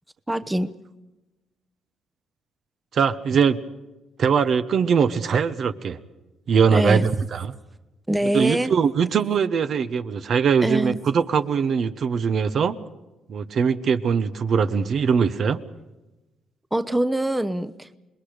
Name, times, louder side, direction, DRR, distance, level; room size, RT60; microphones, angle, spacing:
voice 1, 0.3-0.7 6.7-7.1 8.1-8.7 10.6-10.9 16.7-17.9, right 1 dB, 10° right, 13 dB, 0.9 m, -24 dB
voice 2, 2.9-3.6 4.2-6.0 6.5-7.5 8.3-12.8 13.3-15.6, right 6 dB, 60° right, 11 dB, 1.1 m, -21 dB
27.5 x 20.5 x 5.1 m, 1.1 s
cardioid pair, 90°, 0 cm